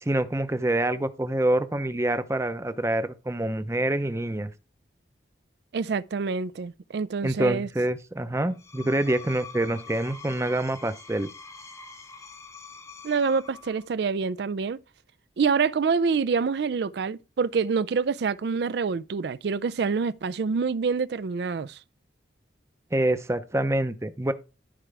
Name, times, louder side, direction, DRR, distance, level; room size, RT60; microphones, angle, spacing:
voice 1, 0.0-4.5 7.2-11.3 22.9-24.3, right 1 dB, 15° right, 0.6 m, -26 dB
voice 2, 5.7-7.7 13.0-14.8 15.4-21.8, right 5 dB, 60° right, 0.4 m, -26 dB
Screech, 8.4-13.9, left 4 dB, 15° left, 0.8 m, -45 dB
13.5 x 4.7 x 3.4 m
head